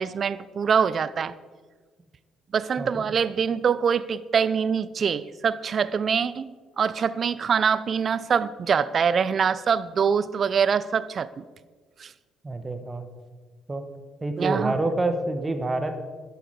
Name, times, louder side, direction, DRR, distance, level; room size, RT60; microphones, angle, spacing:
voice 1, 0.0-1.3 2.5-11.4 12.0-12.1 14.4-14.8, right 6 dB, 45° right, 17 dB, 0.6 m, -24 dB
voice 2, 2.8-3.1 12.4-13.0 13.7-13.8 14.2-16.0, right 2 dB, 25° right, 8 dB, 1.5 m, -27 dB
12.5 x 11.5 x 4.9 m, 1.5 s
hypercardioid pair, 50°, 0 cm